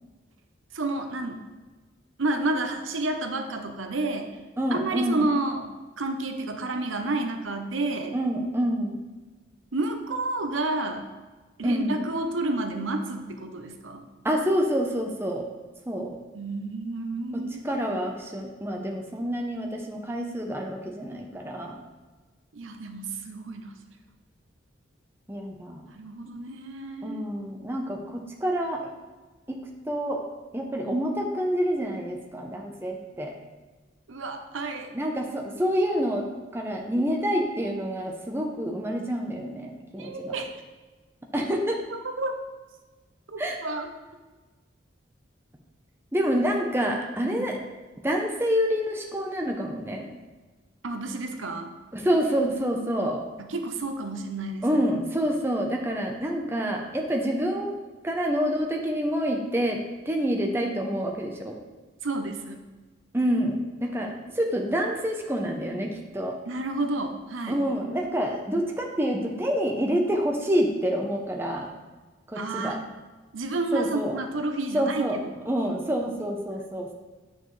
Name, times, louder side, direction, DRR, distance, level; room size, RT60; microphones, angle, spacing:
voice 1, 0.7-1.4 2.2-4.3 4.7-5.7 6.0-8.2 9.7-11.1 11.6-14.0 16.3-17.8 22.5-23.7 25.9-27.3 34.1-34.9 40.0-40.5 41.9-42.3 43.3-43.9 47.3-47.5 50.8-51.7 53.4-54.8 62.0-62.6 66.4-67.6 72.3-72.8 73.3-75.4, right 2 dB, 85° right, 6 dB, 0.8 m, -30 dB
voice 2, 4.6-5.3 8.1-9.0 11.6-12.1 14.2-15.5 15.9-16.1 17.6-21.8 25.3-25.8 27.0-28.9 29.5-29.6 29.9-30.2 30.5-33.3 34.9-36.3 36.5-40.3 41.3-41.8 43.4-43.6 46.1-47.6 48.0-50.1 51.9-53.2 54.6-57.8 58.0-59.8 60.1-61.6 63.1-66.4 67.5-71.7 72.3-72.8 73.7-74.2 74.7-75.2 75.5-76.9, equal, 10° right, 1 dB, 0.7 m, -27 dB
9.1 x 6.4 x 3.2 m, 1.3 s
head